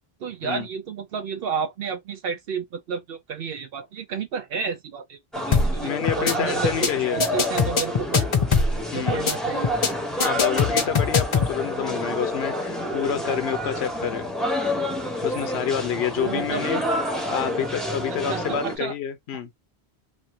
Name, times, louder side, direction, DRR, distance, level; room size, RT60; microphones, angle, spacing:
voice 1, 0.2-5.9 6.2-8.3 8.9-9.7 15.9-16.7 18.1-18.9, right 6 dB, 70° right, 0.7 m, -31 dB
sound 1, 5.3-18.8, left 1 dB, ahead, 0.6 m, -28 dB
sound 2, 5.5-5.8 6.1-6.3 6.6-6.9 7.2-8.8 9.1-9.3 9.6-9.9 10.2-11.5, left 5 dB, 40° left, 0.5 m, -21 dB
voice 2, 5.8-7.2 8.9-9.2 10.2-14.3 15.2-16.8 17.3-19.5, left 9 dB, 85° left, 0.9 m, -28 dB
3.0 x 2.5 x 2.7 m
omnidirectional pair, 1.1 m